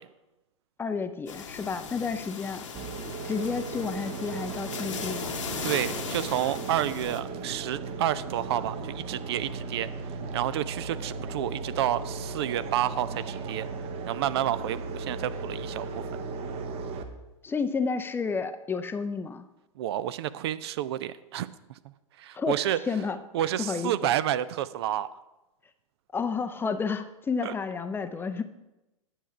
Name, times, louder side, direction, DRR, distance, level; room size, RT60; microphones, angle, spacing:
voice 1, 0.8-2.7 3.3-5.4 17.4-19.5 22.3-22.6 22.9-23.2 23.6-24.1 26.1-28.4, left 5 dB, 15° left, 10 dB, 0.5 m, -31 dB
sound 1, 1.3-7.2, left 6 dB, 65° left, 1.1 m, -38 dB
sound 2, 2.7-17.0, right 4 dB, 35° right, 0.9 m, -36 dB
voice 2, 5.6-9.9 10.3-13.7 14.1-15.9 19.8-21.5 21.8-22.8 23.3-25.1 27.4-27.5, right 12 dB, 50° right, 15 dB, 0.4 m, -30 dB
10.0 x 7.1 x 4.8 m, 0.99 s
figure-of-eight pair, 95°, 17 cm